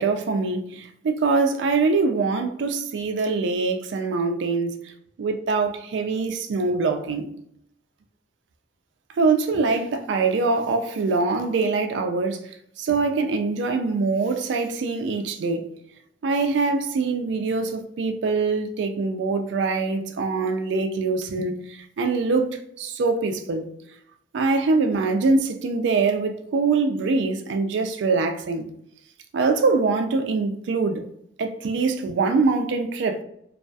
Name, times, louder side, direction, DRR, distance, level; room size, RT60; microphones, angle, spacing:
voice 1, 0.0-4.9 5.2-7.3 9.2-15.7 16.2-22.5 22.8-23.7 24.3-28.7 29.3-31.0 31.4-33.2, right 4 dB, 65° right, 0.3 m, -23 dB
2.3 x 2.2 x 2.6 m
head